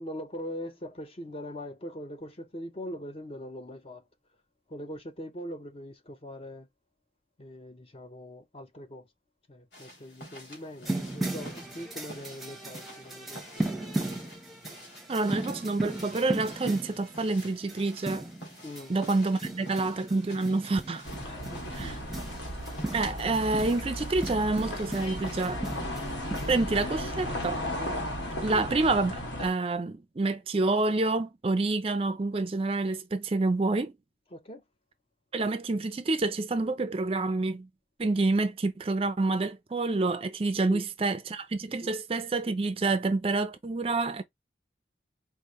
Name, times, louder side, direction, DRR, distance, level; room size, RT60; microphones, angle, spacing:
voice 1, 0.0-4.0 4.7-6.7 7.4-9.1 9.5-13.7 18.6-18.9 21.2-21.7 28.5-28.7 34.3-34.6 40.7-40.8 41.8-41.9, equal, 30° left, 0.6 m, -41 dB
sound 1, 9.7-25.5, equal, 60° left, 2.9 m, -48 dB
sound 2, 10.8-26.8, right 2 dB, ahead, 0.8 m, -37 dB
voice 2, 15.1-18.3 18.9-21.0 21.7-21.9 22.9-25.6 26.5-27.6 28.4-33.9 35.3-37.7 38.0-44.2, right 3 dB, 30° right, 0.4 m, -28 dB
sound 3, 21.0-29.5, equal, 85° left, 1.7 m, -35 dB
4.6 x 2.5 x 3.0 m
head